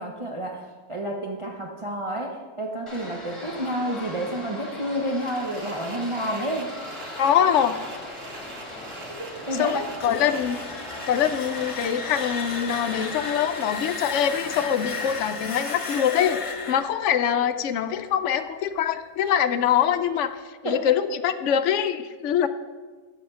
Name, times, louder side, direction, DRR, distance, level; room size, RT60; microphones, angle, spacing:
voice 1, 0.0-6.7 9.2-10.1 20.6-20.8, right 1 dB, 30° right, 0 dB, 0.7 m, -30 dB
sound 1, 2.9-15.3, left 1 dB, 20° left, 1.8 m, -39 dB
sound 2, 5.3-15.9, right 4 dB, 65° right, 1.3 m, -44 dB
voice 2, 7.2-7.7 9.6-10.6 11.1-22.5, left 9 dB, 65° left, 11 dB, 0.8 m, -24 dB
sound 3, 9.8-18.7, left 4 dB, 40° left, 0.4 m, -35 dB
7.7 x 5.8 x 6.8 m, 1.4 s
omnidirectional pair, 1.5 m